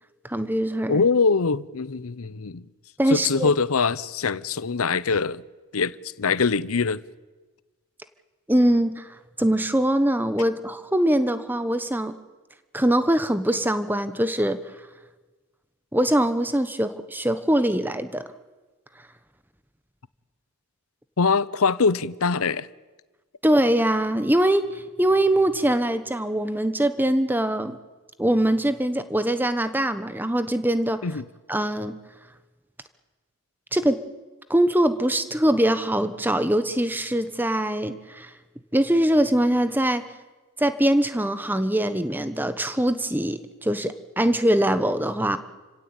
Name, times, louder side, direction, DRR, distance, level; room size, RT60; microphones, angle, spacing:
voice 1, 0.2-1.0 3.0-3.5 8.5-9.1 9.4-12.1 12.7-14.6 15.9-18.2 23.4-27.8 28.2-31.0 31.5-32.0 33.7-34.0 34.5-38.3 38.7-40.1 40.6-45.4, right 1 dB, 10° right, 1.1 m, -22 dB
voice 2, 0.9-2.6 3.1-5.4 5.7-7.0 21.2-22.7 31.0-31.2, left 4 dB, 85° left, 0.8 m, -23 dB
29.0 x 16.5 x 9.0 m
head